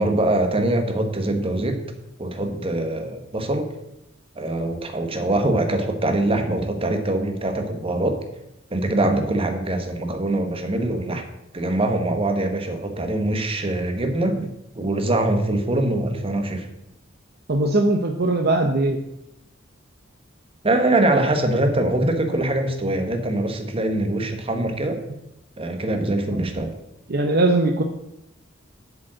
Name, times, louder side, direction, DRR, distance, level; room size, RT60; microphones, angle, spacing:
voice 1, 0.0-1.8 2.2-3.7 4.4-8.2 8.7-11.3 11.5-14.5 14.7-16.7 20.6-25.0 25.6-26.7, right 1 dB, 30° right, 5 dB, 1.2 m, -23 dB
voice 2, 17.5-19.0 27.1-27.8, right 2 dB, 55° right, 5 dB, 0.7 m, -20 dB
7.9 x 5.2 x 7.5 m, 0.85 s
head